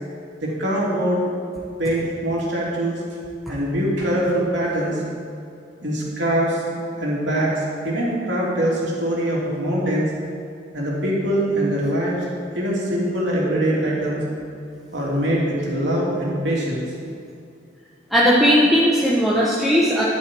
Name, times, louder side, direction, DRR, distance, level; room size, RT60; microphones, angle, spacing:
voice 1, 0.4-1.3 1.8-3.0 3.5-5.0 5.8-10.1 10.7-12.2 12.5-14.2 14.9-16.8, right 1 dB, 70° right, -5 dB, 3.1 m, -23 dB
voice 2, 18.1-20.1, equal, ahead, -7 dB, 1.1 m, -17 dB
11.0 x 11.0 x 4.6 m, 2.5 s
head